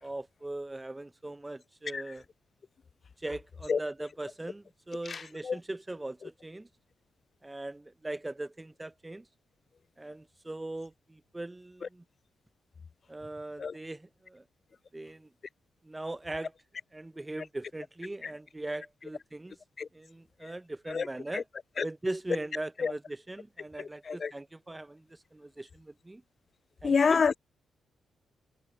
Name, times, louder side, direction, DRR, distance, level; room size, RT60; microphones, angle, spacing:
voice 1, 0.0-2.2 3.2-6.7 7.4-9.3 10.0-12.0 13.1-14.4 14.9-15.3 15.8-16.5 16.9-19.6 19.9-21.5 21.8-26.2 26.8-27.2, right 2 dB, 20° right, 0.7 m, -40 dB
voice 2, 5.1-5.6 13.6-13.7 18.2-18.3 19.8-19.9 20.4-20.5 20.9-21.1 21.3-21.4 21.8-21.9 22.8-22.9 23.8-24.3 26.8-27.4, left 5 dB, 50° left, 0.3 m, -28 dB
hypercardioid pair, 45°, 0 cm